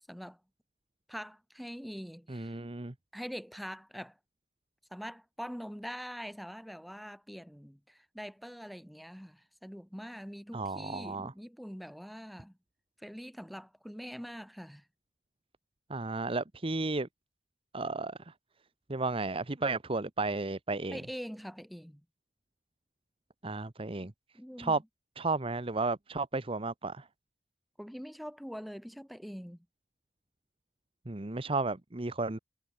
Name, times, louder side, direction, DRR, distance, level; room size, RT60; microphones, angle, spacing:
voice 1, 0.1-0.4 1.1-2.6 3.1-4.2 4.9-12.5 13.0-14.8 20.9-22.0 24.3-24.8 27.8-29.6, equal, ahead, 2.0 m, -44 dB
voice 2, 2.3-2.9 10.5-11.3 15.9-17.1 17.7-18.3 18.9-21.0 23.4-24.1 24.6-24.8 25.2-27.1 31.1-32.4, right 3 dB, 30° right, 1.0 m, -33 dB
head